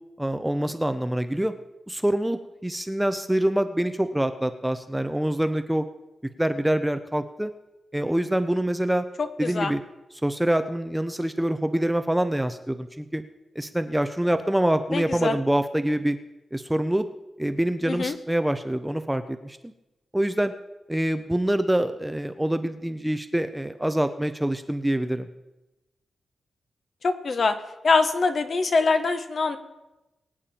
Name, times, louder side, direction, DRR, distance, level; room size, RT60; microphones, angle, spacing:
voice 1, 0.2-1.5 1.9-5.8 6.4-7.5 7.9-9.1 9.4-9.8 10.2-13.2 13.6-16.2 16.5-17.1 17.4-19.7 20.1-20.5 20.9-25.3, right 1 dB, 5° right, 9 dB, 0.6 m, -25 dB
voice 2, 9.4-9.7 14.9-15.4 17.9-18.1 27.0-27.5 27.8-29.6, left 4 dB, 45° left, 8 dB, 1.1 m, -23 dB
23.0 x 8.7 x 4.4 m, 0.99 s
wide cardioid pair, 140°, 0 cm